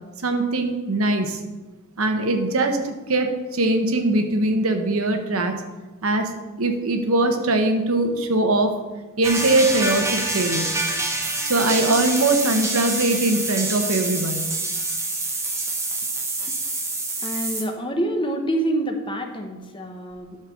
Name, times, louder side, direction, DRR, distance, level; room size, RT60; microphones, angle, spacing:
voice 1, 0.2-1.4 2.0-5.6 6.0-6.3 6.6-8.7 9.2-10.8 11.4-14.5, right 2 dB, 65° right, 6 dB, 1.0 m, -21 dB
sound 1, 9.2-17.6, right 2 dB, 10° right, 1.1 m, -26 dB
voice 2, 17.2-20.4, right 1 dB, 20° left, 4 dB, 0.9 m, -27 dB
11.0 x 4.5 x 6.3 m, 1.2 s
head